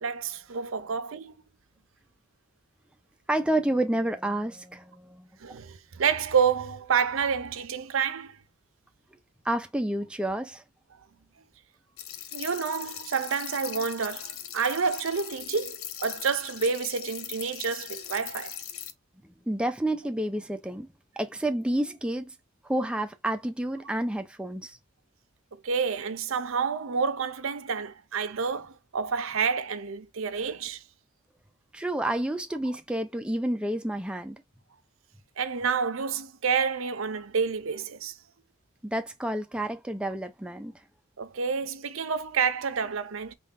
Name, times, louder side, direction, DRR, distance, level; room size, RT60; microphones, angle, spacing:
voice 1, 0.0-1.3 5.4-8.4 12.3-18.6 25.6-30.8 35.4-38.2 41.2-43.3, right 6 dB, 70° right, 0.6 m, -29 dB
voice 2, 3.3-5.3 9.4-10.6 19.5-20.9 21.2-22.3 22.6-24.8 31.7-34.4 38.8-40.7, right 1 dB, 5° right, 0.4 m, -29 dB
sound 1, 12.0-18.9, left 10 dB, 90° left, 0.7 m, -40 dB
3.7 x 2.4 x 3.6 m
head